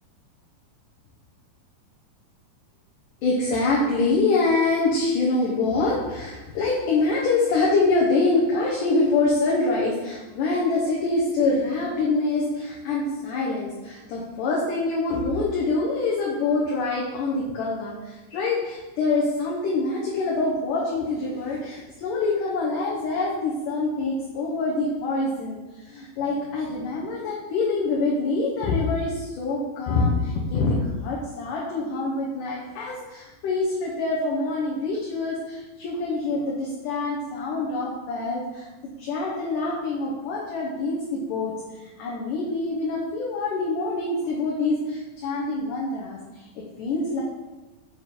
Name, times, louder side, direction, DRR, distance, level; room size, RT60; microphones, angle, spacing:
voice 1, 3.2-38.7 39.0-41.5 42.0-47.2, left 3 dB, 65° left, -4 dB, 2.4 m, -25 dB
7.4 x 6.5 x 4.2 m, 1.1 s
omnidirectional pair, 4.4 m